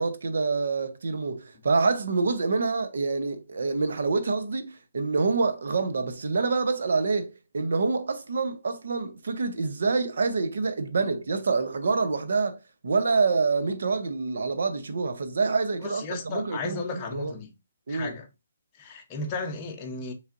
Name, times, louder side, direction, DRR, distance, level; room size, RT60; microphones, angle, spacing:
voice 1, 0.0-17.3 17.9-18.2, right 4 dB, 75° right, 0.8 m, -27 dB
voice 2, 15.8-17.5 17.9-18.3 18.8-20.1, left 4 dB, 20° left, 0.7 m, -34 dB
5.4 x 3.3 x 2.5 m
hypercardioid pair, 170°, 0 cm